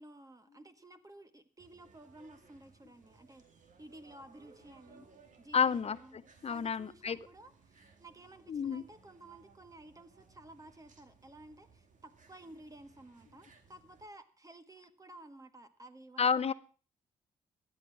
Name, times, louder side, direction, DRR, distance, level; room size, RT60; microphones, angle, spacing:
voice 1, 0.0-3.4 3.8-5.1 5.4-16.5, right 1 dB, 20° right, 9 dB, 1.7 m, -54 dB
sound 1, 1.6-14.1, right 4 dB, 55° right, 2.3 m, -63 dB
voice 2, 5.5-7.2 8.5-8.8 16.2-16.5, left 6 dB, 45° left, 17 dB, 0.7 m, -30 dB
13.5 x 8.7 x 6.0 m, 0.40 s
supercardioid pair, 55°, 15 cm